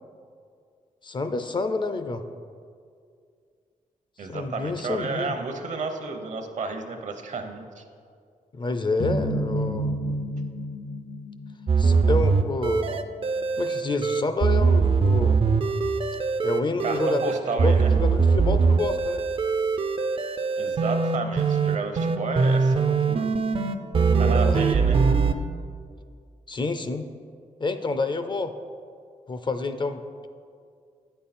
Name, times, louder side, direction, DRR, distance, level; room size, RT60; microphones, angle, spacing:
voice 1, 1.0-2.2 4.3-5.3 8.5-9.9 11.8-13.0 13.6-15.4 16.4-17.4 17.6-19.3 24.2-24.7 26.5-27.0 27.6-28.5 29.3-30.0, left 3 dB, 35° left, 9 dB, 0.4 m, -28 dB
voice 2, 4.2-7.8 16.8-17.9 20.6-23.3 24.2-25.0, right 4 dB, 60° right, 6 dB, 0.8 m, -31 dB
sound 1, 9.0-12.2, equal, 80° left, 2.0 m, -30 dB
sound 2, 11.7-25.3, right 4 dB, 40° right, 0.4 m, -22 dB
9.2 x 5.5 x 4.2 m, 2.2 s
cardioid pair, 95°, 14 cm